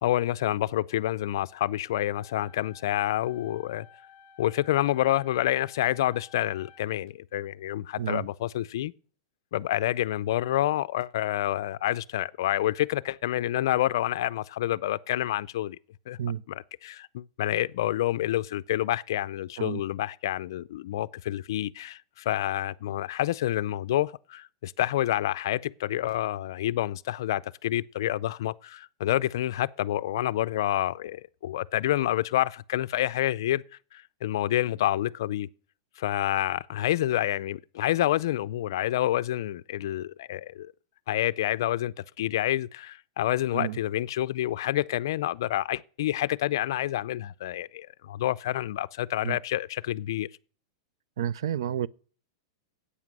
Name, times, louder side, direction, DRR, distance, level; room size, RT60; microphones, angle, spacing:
voice 1, 0.0-3.9 4.4-8.9 9.5-15.8 16.1-16.2 16.5-33.6 33.9-35.5 36.0-40.7 41.1-50.3, left 13 dB, 50° left, 0.4 m, -28 dB
sound 1, 2.1-7.1, left 7 dB, 25° left, 0.8 m, -54 dB
voice 2, 51.2-51.9, right 10 dB, 70° right, 0.4 m, -30 dB
13.0 x 8.5 x 6.1 m
supercardioid pair, 180°, 3 cm